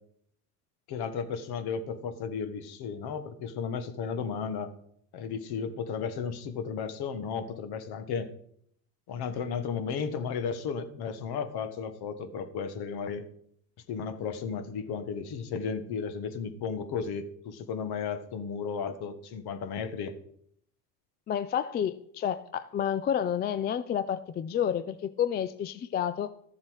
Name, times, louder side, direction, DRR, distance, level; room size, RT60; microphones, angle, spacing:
voice 1, 0.9-4.7 5.1-8.3 9.1-13.2 13.9-20.1, left 6 dB, 50° left, 10 dB, 1.6 m, -34 dB
voice 2, 21.3-26.3, left 9 dB, 20° left, 12 dB, 0.4 m, -30 dB
13.5 x 7.3 x 4.8 m, 0.68 s
hypercardioid pair, 95°, 49 cm